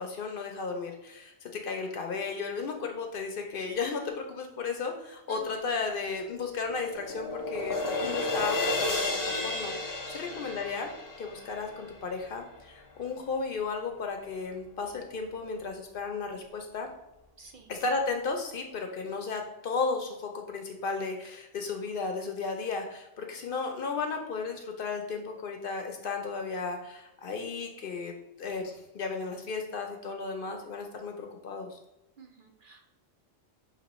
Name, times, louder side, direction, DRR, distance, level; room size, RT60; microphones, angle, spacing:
voice 1, 0.0-9.7 10.1-10.9 11.2-16.9 17.7-28.1 28.4-31.8, left 4 dB, 60° left, 4 dB, 0.7 m, -34 dB
voice 2, 5.3-5.6 10.0-10.5 17.4-17.7 32.2-32.9, right 3 dB, 60° right, 2 dB, 0.6 m, -51 dB
sound 1, 6.1-12.5, left 2 dB, 35° left, 0.3 m, -33 dB
5.9 x 2.8 x 3.0 m, 0.94 s
omnidirectional pair, 1.2 m